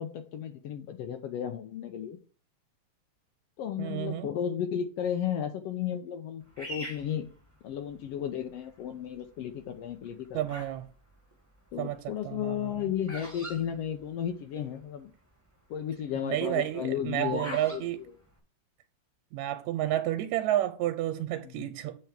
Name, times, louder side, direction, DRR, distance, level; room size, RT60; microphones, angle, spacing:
voice 1, 0.0-2.2 3.6-7.3 7.6-10.5 11.7-15.1 15.7-17.8 21.4-21.7, left 9 dB, 70° left, 1.6 m, -34 dB
voice 2, 3.8-4.3 10.3-10.9 11.8-12.8 16.2-18.0 19.3-22.0, right 13 dB, 85° right, 1.9 m, -31 dB
Bird vocalization bird call bird song, 6.6-8.1 8.7-9.2 9.9-10.8 11.1-14.6 14.9-15.0 15.1-15.5 15.9-17.8, right 3 dB, 5° right, 1.5 m, -41 dB
8.0 x 4.6 x 5.8 m
omnidirectional pair, 3.3 m